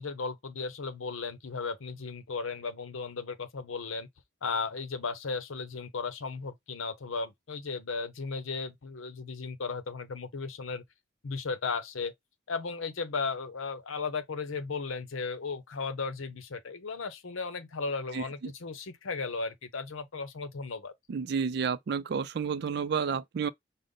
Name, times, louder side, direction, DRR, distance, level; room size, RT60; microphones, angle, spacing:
voice 1, 0.0-4.1 4.4-10.8 11.2-12.1 12.5-20.9, left 4 dB, 85° left, 0.7 m, -35 dB
voice 2, 21.1-23.5, right 6 dB, 55° right, 0.3 m, -30 dB
5.1 x 2.1 x 3.7 m
head